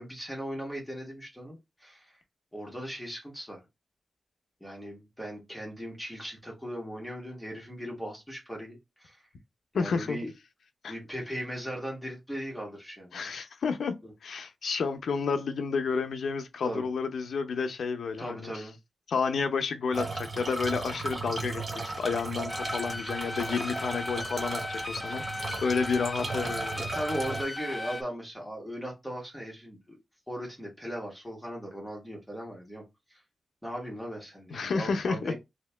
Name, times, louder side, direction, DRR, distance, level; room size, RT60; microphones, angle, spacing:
voice 1, 0.0-2.1 2.5-3.6 4.6-9.2 9.7-10.3 10.9-13.3 14.0-14.1 16.6-16.9 18.2-18.8 26.8-30.0 30.3-32.8 33.1-33.2 33.6-35.3, equal, 5° left, 1.3 m, -38 dB
voice 2, 9.7-10.2 10.8-10.9 13.1-18.6 19.1-26.8 34.5-35.3, left 5 dB, 90° left, 0.6 m, -31 dB
sound 1, 19.9-27.4, right 3 dB, 35° right, 0.7 m, -36 dB
sound 2, 22.5-28.0, left 2 dB, 20° left, 0.4 m, -37 dB
2.8 x 2.8 x 3.3 m
wide cardioid pair, 130°, 0 cm